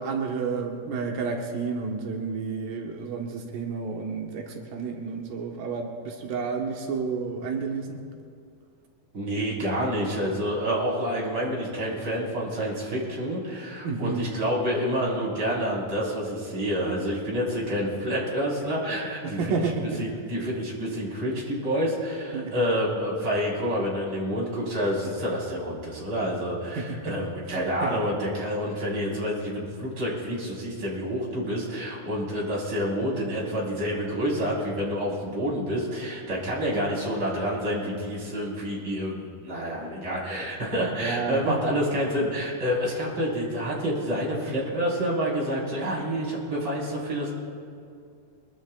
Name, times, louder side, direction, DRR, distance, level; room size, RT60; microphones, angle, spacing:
voice 1, 0.0-8.0 13.8-14.3 19.2-20.0 22.3-22.6 26.8-27.2 27.5-27.6 27.8-28.0 41.0-41.6, right 4 dB, 90° right, 1 dB, 2.9 m, -30 dB
voice 2, 9.1-47.3, equal, 35° right, -5 dB, 4.5 m, -28 dB
23.5 x 22.5 x 2.3 m, 2.4 s
omnidirectional pair, 3.8 m